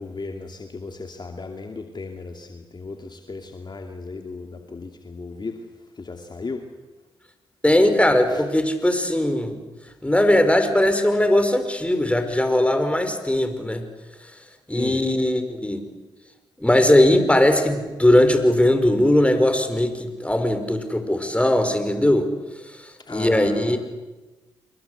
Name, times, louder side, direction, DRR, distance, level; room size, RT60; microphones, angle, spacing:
voice 1, 0.0-5.6 5.9-6.7 8.3-8.4 14.7-15.0 23.0-23.8, left 3 dB, 40° left, 4 dB, 2.6 m, -35 dB
voice 2, 7.6-9.6 10.0-13.9 14.7-15.8 16.6-22.3 23.1-23.8, left 1 dB, 10° left, 8 dB, 5.5 m, -19 dB
28.5 x 22.5 x 8.2 m, 1.1 s
hypercardioid pair, 45°, 11 cm